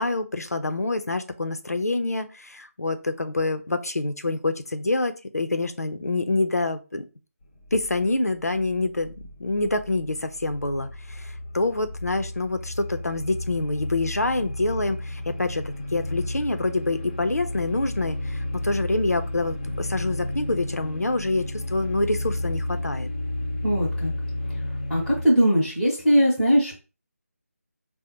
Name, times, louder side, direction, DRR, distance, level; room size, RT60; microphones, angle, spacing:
voice 1, 0.0-7.0 7.7-9.1 9.4-15.6 15.9-23.1, left 2 dB, 75° left, 8 dB, 0.5 m, -26 dB
sound 1, 7.4-25.3, left 1 dB, 30° left, 0.7 m, -33 dB
voice 2, 23.6-24.1 24.9-26.7, equal, ahead, -11 dB, 0.9 m, -20 dB
3.8 x 2.1 x 4.3 m, 0.32 s
figure-of-eight pair, 160°, 8 cm